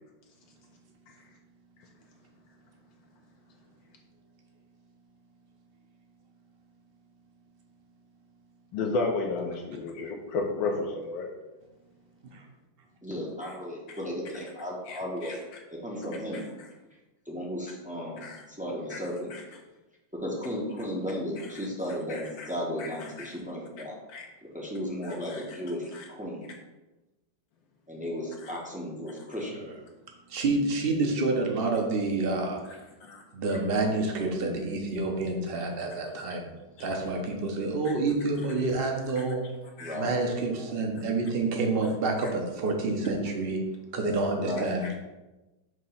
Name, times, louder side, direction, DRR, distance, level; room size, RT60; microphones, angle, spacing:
voice 1, 8.7-11.3 13.4-13.5 14.9-15.3 18.2-18.4 18.9-19.0 19.3-19.4 22.1-22.5 22.8-23.3 24.1-24.3 25.0-25.4 25.9-26.0 28.4-28.5 33.0-33.2 36.8-36.9 39.8-40.0, left 3 dB, 75° left, 1 dB, 1.4 m, -33 dB
voice 2, 13.0-16.4 17.3-18.3 18.6-19.3 20.1-24.0 24.5-26.5 27.9-29.7 39.8-40.2 44.4-44.8, equal, 10° right, -3 dB, 0.4 m, -35 dB
voice 3, 30.3-32.8 33.3-36.5 36.8-39.4 40.0-43.6 43.9-44.9, right 3 dB, 50° right, 2 dB, 0.7 m, -28 dB
6.3 x 2.9 x 5.5 m, 1.1 s
omnidirectional pair, 2.1 m